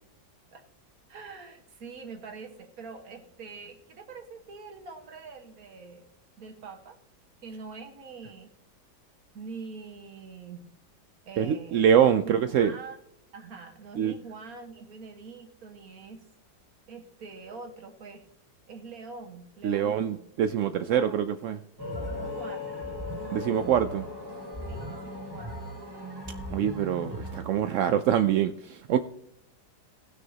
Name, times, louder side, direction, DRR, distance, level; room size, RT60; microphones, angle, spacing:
voice 1, 1.1-6.1 6.4-7.0 7.4-8.5 9.3-10.7 11.3-11.9 12.2-13.0 13.3-16.2 16.9-18.2 18.7-20.2 20.9-21.1 22.1-22.9 24.7-25.6, right 4 dB, 55° right, 4 dB, 1.9 m, -44 dB
voice 2, 11.4-12.7 14.0-14.1 19.6-21.6 23.3-24.1 26.5-29.0, right 9 dB, 80° right, 10 dB, 0.7 m, -24 dB
sound 1, 21.8-27.4, left 1 dB, 15° right, 1.6 m, -37 dB
18.5 x 6.2 x 2.9 m, 0.76 s
omnidirectional pair, 1.8 m